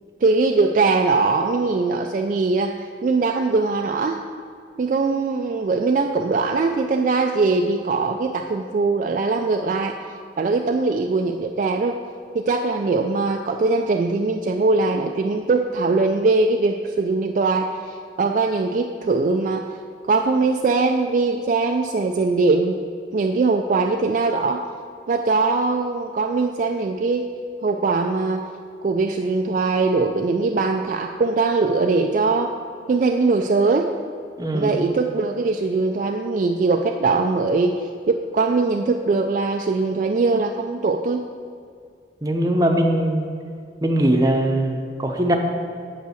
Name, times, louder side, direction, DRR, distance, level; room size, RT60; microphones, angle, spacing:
voice 1, 0.2-2.8 3.0-4.2 4.8-10.0 10.4-12.0 12.3-19.7 20.1-22.8 23.1-24.7 25.1-27.3 27.6-28.5 28.8-32.5 32.9-33.9 34.5-41.2, right 3 dB, 45° right, 4 dB, 0.3 m, -21 dB
voice 2, 34.4-34.8 42.2-43.3 43.8-45.4, right 1 dB, 20° right, 2 dB, 0.8 m, -20 dB
7.8 x 5.3 x 6.4 m, 2.2 s
head